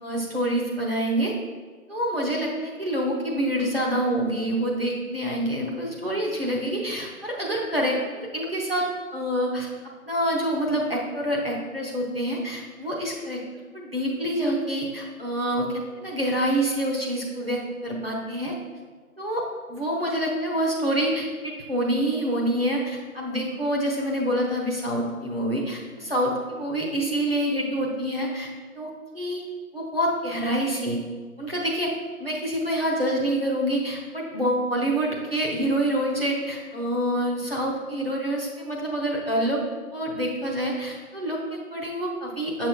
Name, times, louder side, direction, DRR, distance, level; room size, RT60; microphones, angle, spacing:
voice 1, 0.0-1.3 1.9-8.8 9.1-9.7 10.0-13.4 13.7-18.5 19.2-28.5 28.7-29.4 29.7-31.0 31.4-31.9 32.2-39.6 39.9-42.7, right 1 dB, 40° right, -4 dB, 1.0 m, -27 dB
6.5 x 6.3 x 2.3 m, 1.5 s
figure-of-eight pair, 170°, 45 cm